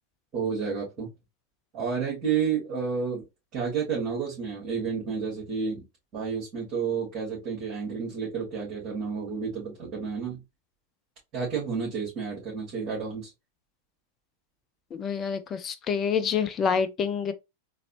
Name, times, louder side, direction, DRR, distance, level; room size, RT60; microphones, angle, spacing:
voice 1, 0.3-1.1 1.7-3.2 3.5-5.8 6.1-10.4 11.3-13.3, right 6 dB, 35° right, 2.4 m, -30 dB
voice 2, 14.9-17.3, left 6 dB, 25° left, 0.6 m, -27 dB
4.0 x 2.8 x 3.0 m
figure-of-eight pair, 90°, 0 cm